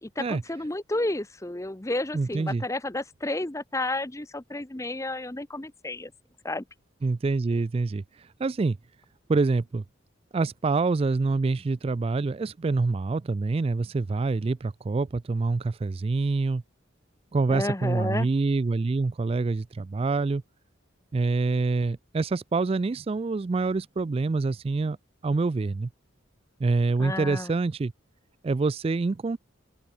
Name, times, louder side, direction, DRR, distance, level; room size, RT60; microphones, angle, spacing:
voice 1, 0.0-6.1 6.4-6.6 17.5-18.3 27.0-27.5, left 2 dB, 15° left, 0.8 m, -31 dB
voice 2, 2.1-2.6 7.0-8.8 9.3-9.8 10.3-16.6 17.3-20.4 21.1-25.0 25.2-25.9 26.6-27.9 28.4-29.4, right 3 dB, 30° right, 0.3 m, -26 dB
open air
head